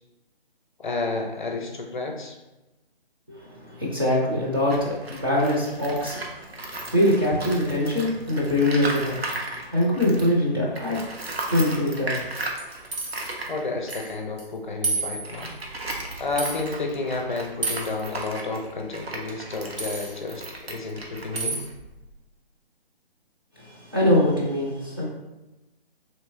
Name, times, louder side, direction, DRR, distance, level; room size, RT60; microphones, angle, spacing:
voice 1, 0.8-2.3 13.5-15.5 16.2-21.6, left 3 dB, 55° left, 2 dB, 0.5 m, -31 dB
voice 2, 3.4-6.2 6.7-9.2 9.7-11.0 11.5-12.2 23.6-25.0, left 1 dB, 25° right, -7 dB, 0.4 m, -23 dB
Tools, 4.6-10.4 10.7-22.2, right 2 dB, 80° right, 0.7 m, -36 dB
sound 1, 12.6-13.3 13.9-14.1 14.4-14.5 14.8-15.5 16.4-16.6 17.6-18.0 19.8-20.1 21.4-21.7, right 3 dB, 65° right, 1.1 m, -30 dB
3.0 x 2.9 x 2.5 m, 1.0 s
figure-of-eight pair, 145°, 30 cm